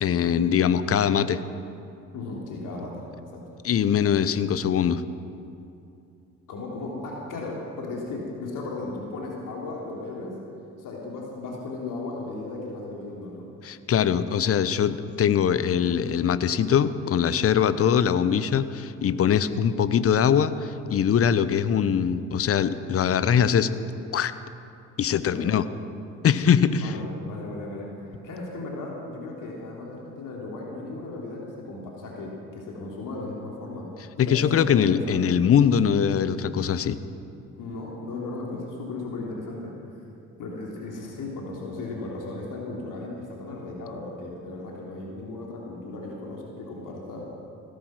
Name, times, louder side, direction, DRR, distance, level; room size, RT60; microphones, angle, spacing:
voice 1, 0.0-1.4 3.6-5.0 13.6-23.7 24.1-24.3 25.0-25.7 26.2-27.0 34.2-37.0, left 8 dB, 35° left, 14 dB, 0.9 m, -22 dB
voice 2, 2.1-3.4 6.5-10.3 10.8-13.5 25.2-25.5 26.7-33.9 34.2-35.3 37.6-40.0 40.4-47.3, left 2 dB, 50° left, -2 dB, 3.3 m, -36 dB
16.5 x 13.5 x 6.0 m, 2.7 s
hypercardioid pair, 55°, 39 cm